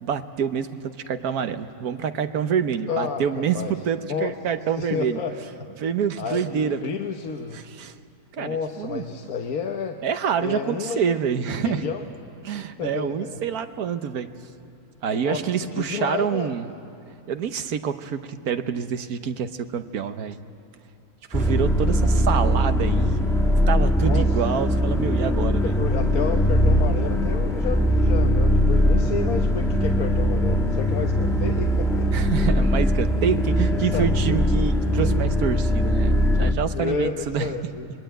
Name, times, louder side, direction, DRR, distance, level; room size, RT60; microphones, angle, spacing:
voice 1, 0.0-5.2 5.8-6.8 7.5-7.9 8.3-9.0 10.0-11.9 12.4-14.3 15.0-16.6 17.3-20.4 21.3-23.3 23.7-25.8 32.1-37.5, right 7 dB, 85° right, 9 dB, 1.5 m, -27 dB
voice 2, 2.9-3.2 3.5-3.7 4.1-4.3 4.8-5.7 6.2-7.6 8.4-10.0 10.4-11.2 11.5-12.0 12.5-13.4 15.1-15.5 15.7-16.5 24.0-24.6 25.6-32.1 33.9-34.5 36.7-37.9, left 6 dB, 70° left, 3 dB, 1.5 m, -31 dB
sound 1, 21.3-36.5, equal, ahead, 1.8 m, -21 dB
26.0 x 21.5 x 9.0 m, 2.7 s
omnidirectional pair, 1.6 m